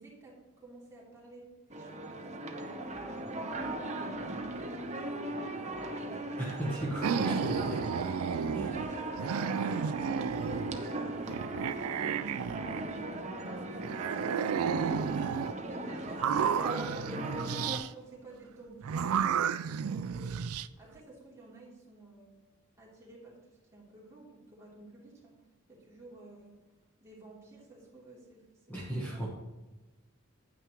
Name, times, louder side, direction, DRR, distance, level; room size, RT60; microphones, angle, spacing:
voice 1, 0.0-7.3 8.1-9.9 10.2-11.9 12.3-17.6 17.9-20.4 20.8-22.3 22.8-25.4 25.7-26.6 27.0-29.2, right 2 dB, 15° right, -6 dB, 2.8 m, -53 dB
sound 1, 1.7-17.8, right 1 dB, 30° right, 0.8 m, -38 dB
voice 2, 6.4-7.9 8.5-8.7 28.7-29.3, right 1 dB, 10° left, -5 dB, 1.3 m, -35 dB
sound 2, 7.0-8.9 9.2-10.9 11.3-13.3 13.8-15.5 16.1-17.9 18.8-20.7, right 7 dB, 80° right, 0.4 m, -32 dB
9.6 x 9.0 x 3.0 m, 1.1 s
head